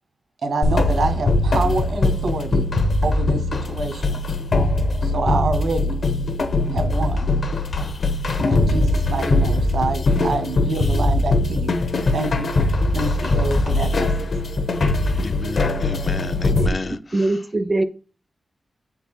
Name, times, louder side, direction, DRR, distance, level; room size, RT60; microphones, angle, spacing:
voice 1, 0.4-2.7 3.0-4.2 5.0-5.9 6.7-7.3 8.5-11.7 12.1-12.5 12.9-14.1, right 3 dB, 85° right, 1.2 m, -26 dB
sound 1, 0.6-16.7, left 2 dB, 65° left, 0.9 m, -21 dB
voice 2, 15.2-17.0, left 4 dB, 40° left, 0.4 m, -31 dB
voice 3, 16.5-17.8, right 2 dB, 25° right, 0.4 m, -23 dB
7.3 x 4.5 x 4.2 m
wide cardioid pair, 150°, 0 cm